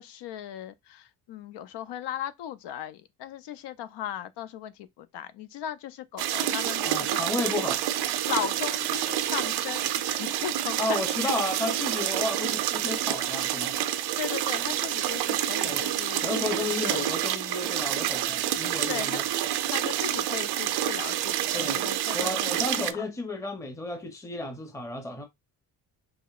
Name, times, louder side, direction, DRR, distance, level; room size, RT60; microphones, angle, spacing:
voice 1, 0.0-7.2 8.1-11.0 14.2-17.1 18.9-19.2 19.7-23.0, left 10 dB, 80° left, 0.6 m, -37 dB
sound 1, 6.2-22.9, right 12 dB, 70° right, 0.5 m, -28 dB
voice 2, 6.8-7.8 10.8-13.8 15.6-15.8 16.2-19.2 21.5-21.8 22.1-25.3, left 2 dB, 5° left, 0.6 m, -32 dB
5.0 x 2.9 x 2.4 m
cardioid pair, 130°, 41 cm